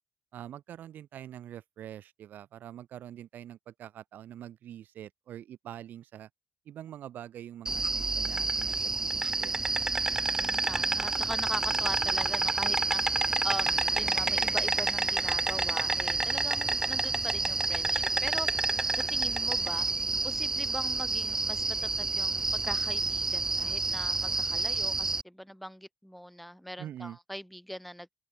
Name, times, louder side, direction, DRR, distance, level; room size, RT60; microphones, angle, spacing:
voice 1, 0.3-6.3 6.7-9.5 26.8-27.2, right 11 dB, 60° right, 0.9 m, -45 dB
Insect, 7.7-25.2, right 3 dB, 15° right, 0.4 m, -29 dB
voice 2, 10.2-13.0 13.4-18.7 18.9-19.9 20.2-28.1, equal, ahead, 1.6 m, -41 dB
open air
cardioid pair, 165°, 4 cm